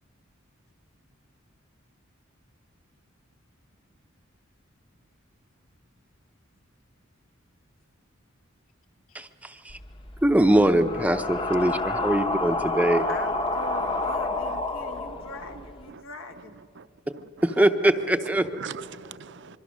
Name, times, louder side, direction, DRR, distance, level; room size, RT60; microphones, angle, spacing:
voice 1, 9.1-9.8 10.2-13.1 17.4-18.5, right 1 dB, 5° right, 7 dB, 0.6 m, -22 dB
sound 1, 9.7-15.8, left 2 dB, 25° left, 0.8 m, -29 dB
voice 2, 13.1-16.6, left 2 dB, 85° left, 6 dB, 1.7 m, -41 dB
voice 3, 13.6-14.2 14.5-14.6 15.0-16.0 16.4-16.5 16.7-17.7 18.3-19.6, right 6 dB, 60° right, 14 dB, 0.6 m, -44 dB
25.0 x 23.5 x 6.3 m, 2.4 s
head